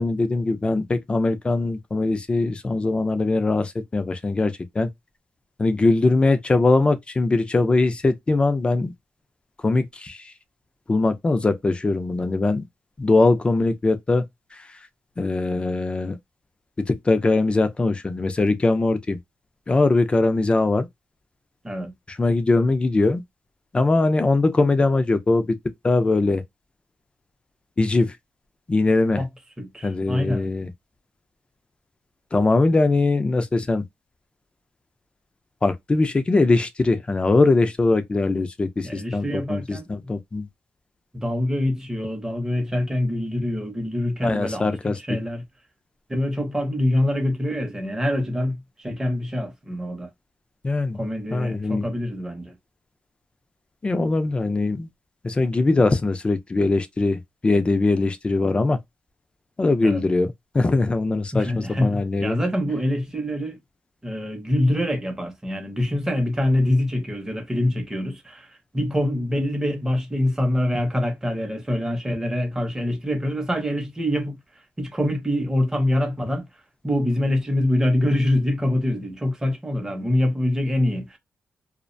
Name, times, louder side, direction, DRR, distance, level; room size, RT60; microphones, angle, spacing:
voice 1, 0.0-4.9 5.6-8.9 9.6-10.3 10.9-12.6 13.0-14.2 15.2-16.2 16.9-19.2 19.7-20.9 22.2-23.2 23.7-25.6 25.8-26.4 27.8-28.2 28.7-29.2 29.8-30.7 32.3-33.8 35.6-40.5 44.2-45.2 50.6-51.0 51.3-51.8 53.8-54.9 55.2-58.8 59.6-62.4, left 3 dB, 25° left, 0.4 m, -21 dB
voice 2, 29.6-30.5 38.8-40.1 41.1-45.4 46.1-50.1 50.9-52.6 59.8-60.0 61.3-63.6 64.0-74.4 74.8-76.5 76.8-81.2, left 1 dB, 10° right, 0.7 m, -25 dB
2.4 x 2.1 x 2.5 m
cardioid pair, 125°, 5 cm